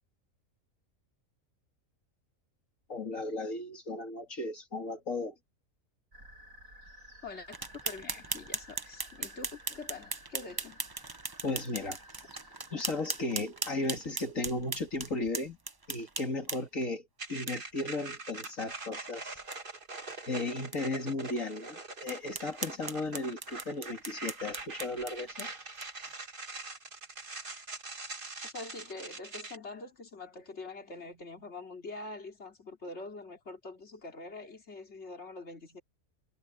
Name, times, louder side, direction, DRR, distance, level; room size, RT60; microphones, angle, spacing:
voice 1, 2.9-5.3 11.4-12.0 12.7-15.6 15.9-17.0 17.3-19.4 20.3-25.5, left 2 dB, 75° left, 2.9 m, -35 dB
sound 1, 6.1-13.3, equal, 90° right, 7.5 m, -54 dB
voice 2, 7.2-10.8 28.4-35.8, left 3 dB, 55° left, 3.2 m, -45 dB
sound 2, 7.5-16.8 17.5-17.6 17.9-18.0 18.4-18.5 18.9-19.0 19.4-19.6 20.1-20.2 20.7-20.8 21.3-21.4 22.1-26.1, right 3 dB, 25° right, 0.6 m, -39 dB
sound 3, 17.2-29.6, right 3 dB, 40° right, 2.1 m, -43 dB
omnidirectional pair, 1.4 m